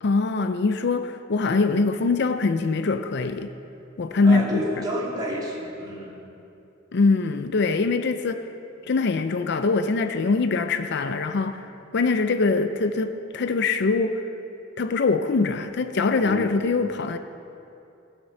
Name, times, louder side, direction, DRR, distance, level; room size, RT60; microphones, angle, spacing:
voice 1, 0.0-3.5 4.0-4.8 6.9-8.4 8.9-11.6 11.9-14.2 14.8-17.2, left 4 dB, 60° left, 9 dB, 0.5 m, -23 dB
voice 2, 4.2-6.1 16.2-16.5, right 1 dB, 20° right, -4 dB, 2.5 m, -30 dB
17.0 x 6.7 x 6.8 m, 2.7 s
head